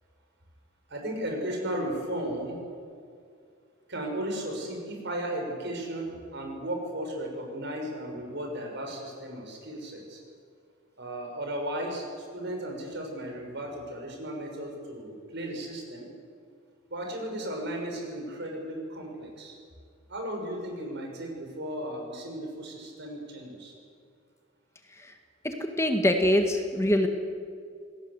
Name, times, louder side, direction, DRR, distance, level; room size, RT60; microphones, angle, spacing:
voice 1, 0.9-2.6 3.9-10.2 11.0-16.1 16.9-19.5 20.1-23.8, right 1 dB, 60° right, 2 dB, 6.5 m, -35 dB
voice 2, 25.4-27.1, left 1 dB, 15° left, 4 dB, 1.8 m, -24 dB
27.5 x 18.5 x 8.2 m, 2.3 s
head